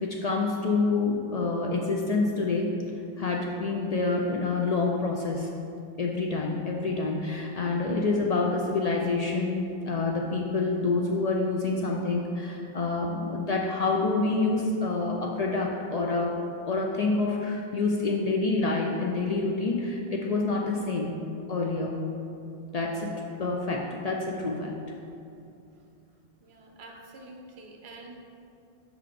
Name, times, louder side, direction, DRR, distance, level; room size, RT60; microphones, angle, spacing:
voice 1, 0.0-2.7 3.2-5.5 6.0-16.4 16.7-21.2 21.5-22.0 22.7-24.8, left 3 dB, 50° left, -1 dB, 0.5 m, -27 dB
voice 2, 26.4-28.2, right 2 dB, 85° right, 1 dB, 1.0 m, -47 dB
5.8 x 3.7 x 4.9 m, 2.6 s
omnidirectional pair, 1.0 m